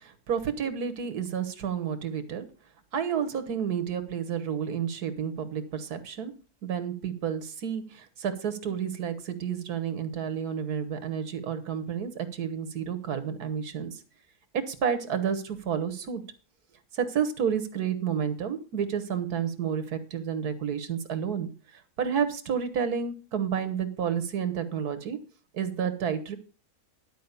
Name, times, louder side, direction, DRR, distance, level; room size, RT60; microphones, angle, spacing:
voice 1, 0.0-2.5 2.9-6.3 6.6-14.0 14.5-16.2 16.9-21.5 22.0-25.2 25.5-26.4, right 7 dB, 80° right, 10 dB, 1.8 m, -30 dB
11.5 x 4.9 x 6.8 m, 0.36 s
omnidirectional pair, 1.6 m